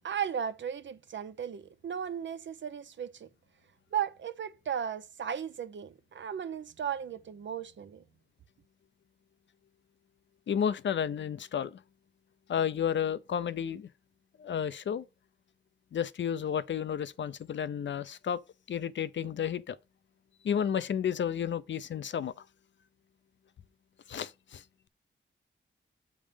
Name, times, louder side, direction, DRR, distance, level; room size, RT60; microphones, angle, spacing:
voice 1, 0.0-3.3 3.9-8.0, right 8 dB, 65° right, 0.6 m, -36 dB
voice 2, 10.5-11.8 12.5-13.9 14.4-15.0 15.9-18.4 18.7-19.8 20.4-22.3 24.1-24.6, left 8 dB, 65° left, 0.5 m, -32 dB
7.2 x 3.6 x 5.0 m
cardioid pair, 70°, 20 cm